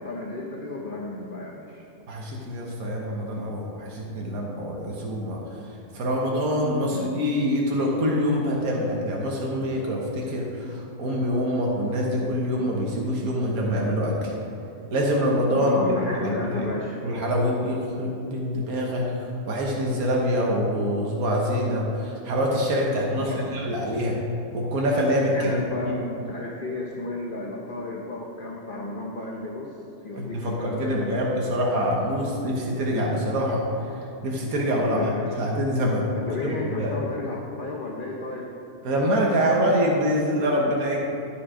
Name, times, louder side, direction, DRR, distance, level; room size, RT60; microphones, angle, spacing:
voice 1, 0.0-1.8 6.9-7.2 15.5-17.0 23.2-23.5 25.3-29.7 30.0-31.2 34.7-35.5 36.1-38.5, left 2 dB, 45° left, -2 dB, 0.9 m, -33 dB
voice 2, 2.1-5.4 5.9-14.3 14.9-15.8 16.2-16.5 17.0-19.1 19.5-24.2 24.5-25.6 30.2-33.6 34.2-36.9 38.8-41.0, equal, 85° right, -2 dB, 1.6 m, -25 dB
12.0 x 5.4 x 4.9 m, 3.0 s
omnidirectional pair, 1.5 m